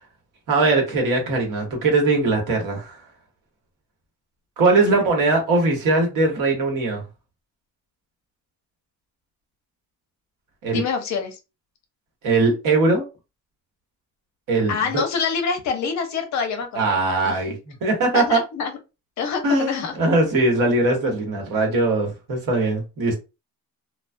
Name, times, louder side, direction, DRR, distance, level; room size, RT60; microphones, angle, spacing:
voice 1, 0.5-3.0 4.6-7.0 10.6-10.8 12.2-13.0 14.5-15.0 16.7-18.4 19.4-23.2, right 3 dB, 65° right, 2 dB, 1.1 m, -20 dB
voice 2, 10.7-11.4 14.7-17.0 17.2-17.6 18.1-18.7 19.2-19.9, left 5 dB, 50° left, 6 dB, 0.6 m, -26 dB
2.3 x 2.2 x 2.5 m, 0.28 s
cardioid pair, 170°, 36 cm